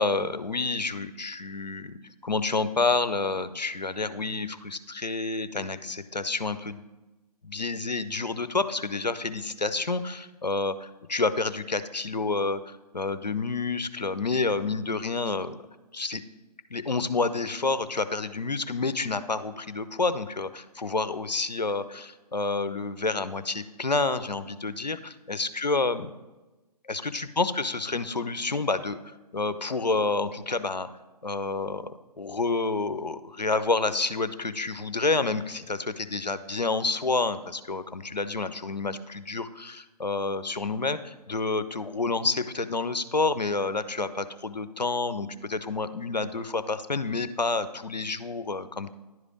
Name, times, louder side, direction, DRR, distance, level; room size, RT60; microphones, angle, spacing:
voice 1, 0.0-6.8 7.4-15.6 15.9-16.2 16.7-26.1 26.9-29.0 29.3-30.9 31.2-48.9, left 3 dB, 90° left, 13 dB, 0.6 m, -29 dB
11.0 x 4.9 x 5.0 m, 1.1 s
figure-of-eight pair, 140°, 21 cm